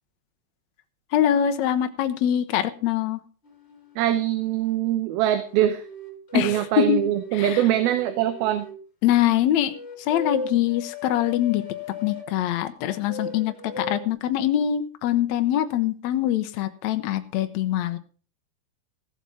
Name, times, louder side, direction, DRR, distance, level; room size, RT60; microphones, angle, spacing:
voice 1, 1.1-3.2 6.3-7.1 7.3-7.7 9.0-11.6 12.0-18.0, left 11 dB, 90° left, 9 dB, 1.5 m, -24 dB
sound 1, 3.4-4.8 5.5-8.8 9.7-12.3 12.9-14.0, left 3 dB, 15° left, 2.9 m, -38 dB
voice 2, 4.0-5.8 6.3-8.7, right 12 dB, 75° right, 10 dB, 2.7 m, -23 dB
15.5 x 7.5 x 5.6 m, 0.40 s
omnidirectional pair, 4.5 m